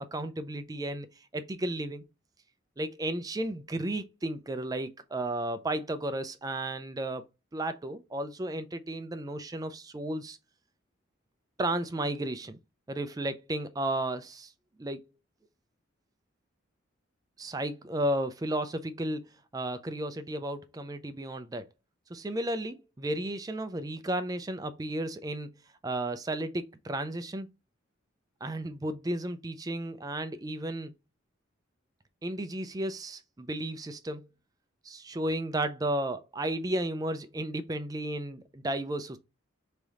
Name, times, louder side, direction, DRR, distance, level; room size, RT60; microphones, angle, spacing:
voice 1, 0.0-2.0 2.8-7.2 7.5-10.4 11.6-12.6 12.9-14.5 14.8-15.0 17.4-19.3 19.5-21.6 22.1-27.5 28.4-30.9 32.2-34.3 34.8-39.2, right 1 dB, 20° right, 0.4 m, -33 dB
3.6 x 3.4 x 4.0 m
head